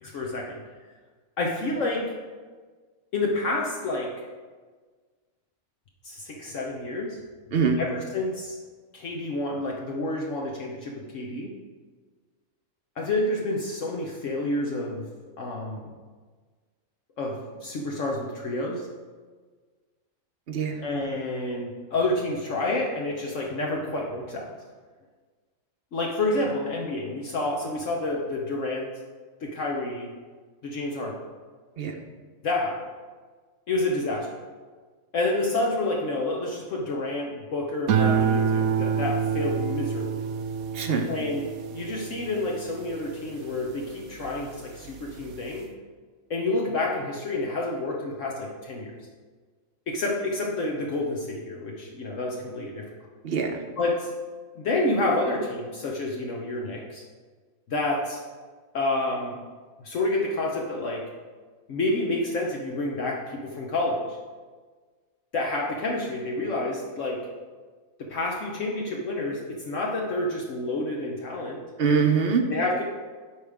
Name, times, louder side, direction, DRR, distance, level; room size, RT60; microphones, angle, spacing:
voice 1, 0.0-0.6 1.4-2.1 3.1-4.1 6.0-7.2 7.8-8.6 8.9-11.5 13.0-15.1 15.4-15.8 17.2-18.9 20.8-24.5 25.9-28.9 29.4-30.1 30.6-31.2 32.4-32.8 33.7-34.4 35.1-40.2 41.1-45.7 46.3-48.9 49.9-52.8 53.8-54.1 54.6-57.0 57.7-58.2 58.7-59.4 59.8-61.0 61.7-64.0 65.3-67.3 68.0-71.6 72.5-72.8, left 2 dB, 65° left, -1 dB, 1.2 m, -29 dB
voice 2, 20.5-20.8 31.8-32.0 40.7-41.1 53.2-53.6 71.8-72.4, right 5 dB, 50° right, 5 dB, 0.8 m, -23 dB
sound 1, 37.9-44.4 44.9-45.4, right 6 dB, 80° right, 1.1 m, -27 dB
12.5 x 4.9 x 3.5 m, 1.4 s
omnidirectional pair, 1.5 m